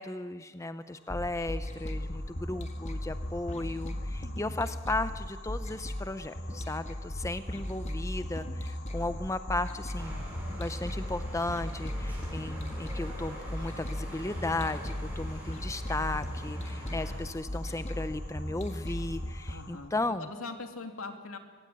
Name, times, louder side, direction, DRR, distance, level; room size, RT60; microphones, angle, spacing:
voice 1, 0.0-10.2 10.5-20.3, left 2 dB, 15° left, 11 dB, 0.6 m, -35 dB
sound 1, 0.8-19.7, left 3 dB, 60° left, 6.0 m, -53 dB
sound 2, 1.1-19.5, left 1 dB, 35° left, 1.7 m, -37 dB
sound 3, 9.9-17.2, right 1 dB, 10° right, 7.3 m, -44 dB
voice 2, 19.5-19.9 20.2-21.4, left 3 dB, 80° left, 5 dB, 2.5 m, -41 dB
24.0 x 16.5 x 9.6 m, 1.5 s
head